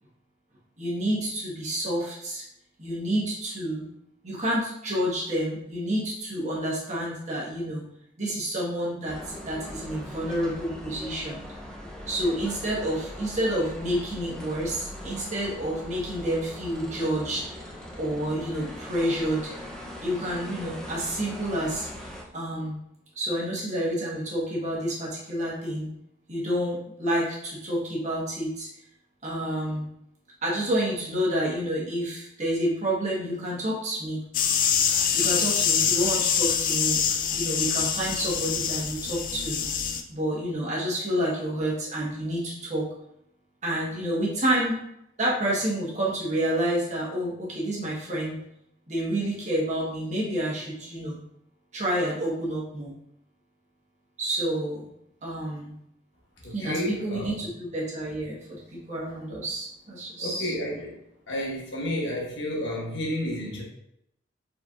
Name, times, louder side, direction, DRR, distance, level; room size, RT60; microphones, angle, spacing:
voice 1, 0.8-2.4 2.8-3.9 4.2-7.8 8.2-11.4 12.1-17.4 17.9-19.5 20.0-22.8 23.1-25.9 26.3-28.7 29.2-29.9 30.4-34.2 35.1-37.0 37.3-39.6 40.1-42.9 43.6-44.8 45.2-48.4 48.9-51.2 51.7-52.9 54.2-54.9 55.2-55.7 56.5-60.5, right 1 dB, 40° right, -5 dB, 1.3 m, -29 dB
sound 1, 9.1-22.2, equal, 5° left, 0.6 m, -40 dB
sound 2, 34.3-40.0, left 8 dB, 45° left, 0.4 m, -25 dB
voice 2, 56.4-57.4 60.2-60.9 61.3-63.6, left 1 dB, 75° left, -3 dB, 1.3 m, -31 dB
4.4 x 4.0 x 2.4 m, 0.77 s
head